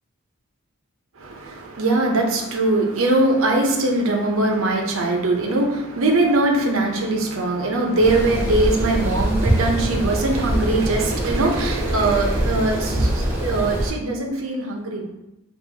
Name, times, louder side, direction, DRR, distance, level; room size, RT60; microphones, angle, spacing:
voice 1, 1.2-15.1, right 2 dB, 75° right, 1 dB, 0.7 m, -21 dB
sound 1, 8.0-13.9, right 1 dB, 10° right, 1.0 m, -23 dB
5.4 x 2.6 x 2.8 m, 0.90 s
head